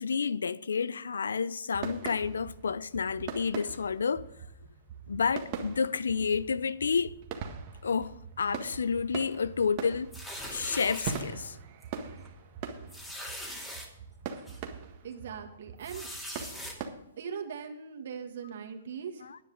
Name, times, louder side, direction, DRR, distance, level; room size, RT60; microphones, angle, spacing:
voice 1, 0.0-4.3 5.1-7.2 7.8-10.1 10.5-11.6 19.2-19.4, left 5 dB, 80° left, 0.5 m, -30 dB
sound 1, 1.7-16.9, right 6 dB, 40° right, 1.6 m, -42 dB
sound 2, 10.1-11.2 11.8-12.0 12.3-12.4 12.9-13.9 14.5-14.6 15.8-16.7, equal, 5° left, 2.5 m, -41 dB
voice 2, 15.0-16.1 17.2-19.3, right 7 dB, 60° right, 1.9 m, -40 dB
10.0 x 9.8 x 5.0 m
hypercardioid pair, 125°, 0 cm